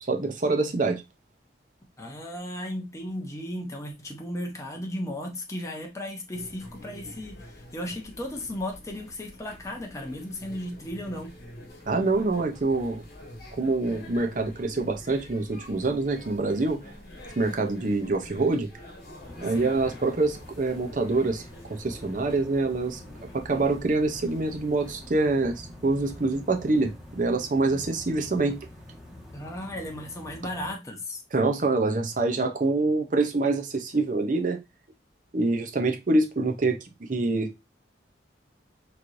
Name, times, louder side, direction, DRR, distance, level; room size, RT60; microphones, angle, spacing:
voice 1, 0.1-1.0 11.9-13.0 13.6-16.8 17.4-18.7 19.4-21.4 21.7-23.0 23.3-28.6 31.3-34.6 35.3-37.6, right 3 dB, 45° right, 0.6 m, -25 dB
voice 2, 2.0-11.3 19.5-19.7 29.3-31.2, left 1 dB, 15° left, 0.8 m, -35 dB
sound 1, 6.3-25.1, left 1 dB, 55° left, 1.5 m, -46 dB
sound 2, 19.2-30.7, left 1 dB, 5° right, 1.4 m, -46 dB
4.5 x 3.1 x 2.6 m
head